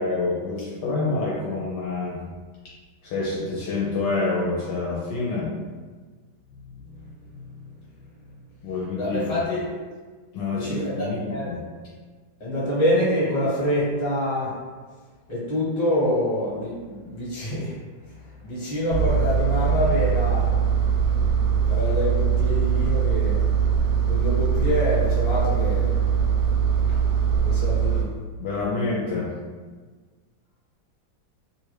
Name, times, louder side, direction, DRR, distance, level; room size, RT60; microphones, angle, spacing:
voice 1, 0.0-2.2 3.0-5.5 8.6-9.4 10.3-11.6 28.4-29.3, left 3 dB, 75° left, -5 dB, 1.1 m, -27 dB
voice 2, 9.0-9.8 10.5-11.5 12.4-14.6 15.3-17.7 18.4-20.5 21.7-23.4 24.1-25.9 27.4-28.1, left 1 dB, 30° left, -8 dB, 1.1 m, -26 dB
Engine, 18.9-28.0, right 7 dB, 70° right, 1.0 m, -22 dB
2.9 x 2.4 x 3.2 m, 1.4 s
omnidirectional pair, 2.1 m